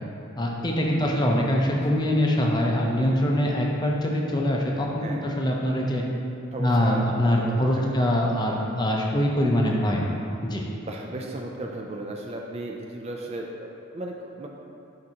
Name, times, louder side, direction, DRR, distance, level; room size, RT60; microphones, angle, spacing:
voice 1, 0.4-6.0 6.6-10.1 10.4-10.6, left 1 dB, 20° left, -1 dB, 0.6 m, -23 dB
voice 2, 0.9-1.4 1.8-1.9 5.0-5.2 6.5-7.1 7.4-8.0 10.8-14.5, right 1 dB, 30° right, 0 dB, 0.3 m, -36 dB
10.5 x 3.7 x 2.8 m, 2.6 s
head